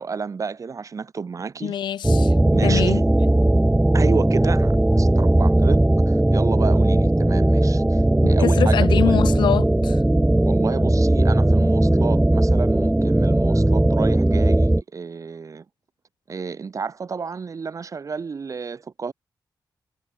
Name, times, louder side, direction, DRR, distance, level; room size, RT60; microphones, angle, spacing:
voice 1, 0.0-1.8 2.5-3.0 3.9-9.2 10.4-15.6 16.3-19.1, right 5 dB, 45° right, 4.3 m, -31 dB
voice 2, 1.6-2.3 2.6-3.0 8.4-10.0, left 10 dB, 85° left, 0.6 m, -24 dB
sound 1, 2.0-14.8, right 1 dB, 10° right, 0.8 m, -18 dB
wide cardioid pair, 110°, 8 cm